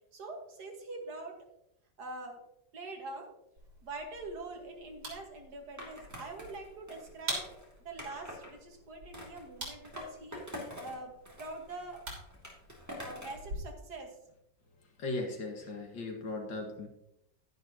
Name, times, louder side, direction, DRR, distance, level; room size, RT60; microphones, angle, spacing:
voice 1, 0.1-1.4 2.0-2.4 2.7-3.3 3.8-12.1 13.0-14.2, right 2 dB, 60° right, 2 dB, 2.0 m, -44 dB
sound 1, 3.6-13.6, right 1 dB, 85° right, 3.6 m, -46 dB
Skateboard, 5.8-8.5 9.1-11.0 11.2-13.5, left 1 dB, 10° right, 2.3 m, -46 dB
voice 2, 15.0-16.9, left 2 dB, 75° left, 1 dB, 2.3 m, -37 dB
10.5 x 10.5 x 2.8 m, 0.82 s
omnidirectional pair, 2.0 m